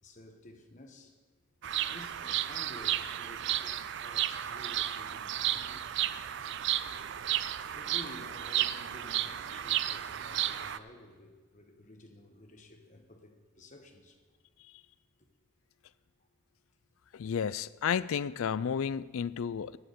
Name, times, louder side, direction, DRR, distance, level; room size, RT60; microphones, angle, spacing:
voice 1, 0.0-1.2 1.9-5.8 7.7-14.2, left 1 dB, 35° left, 1.2 m, -52 dB
Bird vocalization bird call bird song, 1.6-10.8, right 12 dB, 55° right, 0.4 m, -33 dB
voice 2, 17.1-19.8, left 7 dB, 70° left, 0.4 m, -32 dB
12.0 x 7.9 x 6.7 m
head